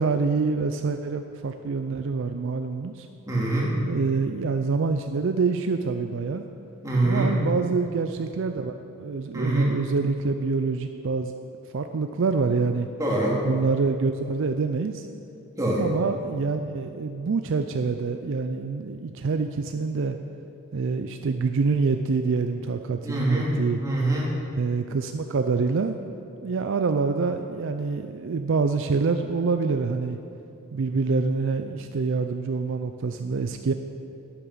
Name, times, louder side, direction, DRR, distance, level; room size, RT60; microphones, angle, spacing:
voice 1, 0.0-3.1 3.8-6.4 7.0-11.3 11.7-12.9 13.4-15.0 15.8-20.2 20.7-23.8 24.6-25.9 26.4-30.2 30.7-33.7, right 4 dB, 60° right, 7 dB, 0.4 m, -26 dB
voice 2, 3.3-3.7 6.8-7.3 9.3-9.7 13.0-13.4 15.6-15.8 23.0-23.5 23.8-24.3, right 2 dB, 15° right, -5 dB, 2.3 m, -24 dB
11.0 x 8.8 x 5.5 m, 2.8 s
head